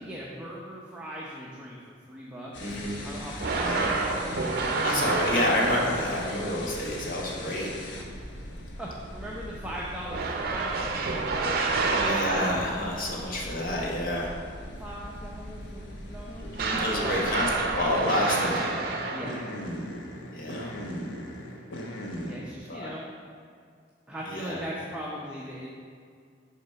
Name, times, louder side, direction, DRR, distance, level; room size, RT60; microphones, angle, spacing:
voice 1, 0.0-2.5 3.0-4.4 8.8-11.6 14.8-16.7 17.0-17.3 19.1-19.4 22.3-23.0 24.1-25.7, equal, 5° right, -5 dB, 0.6 m, -39 dB
sound 1, 2.5-22.4, equal, 75° left, 0.9 m, -40 dB
voice 2, 2.6-3.0 3.6-3.9 4.8-7.7 11.9-14.3 16.4-18.7 20.3-20.7 22.7-22.9 24.3-24.6, left 1 dB, 50° left, -3 dB, 1.3 m, -29 dB
sound 2, 3.4-6.4 10.1-13.0 16.6-19.7, right 3 dB, 55° right, 0.6 m, -29 dB
6.5 x 4.0 x 5.6 m, 2.1 s
head